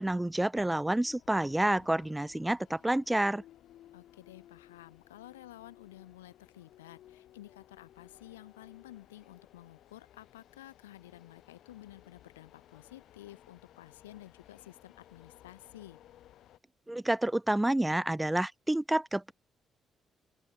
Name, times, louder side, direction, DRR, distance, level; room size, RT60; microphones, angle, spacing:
voice 1, 0.0-3.4 16.9-19.3, right 1 dB, 10° right, 0.8 m, -29 dB
sound 1, 0.7-16.6, left 12 dB, 60° left, 6.6 m, -59 dB
voice 2, 3.9-16.0, left 14 dB, 80° left, 6.7 m, -52 dB
open air
figure-of-eight pair, 40°, 0 cm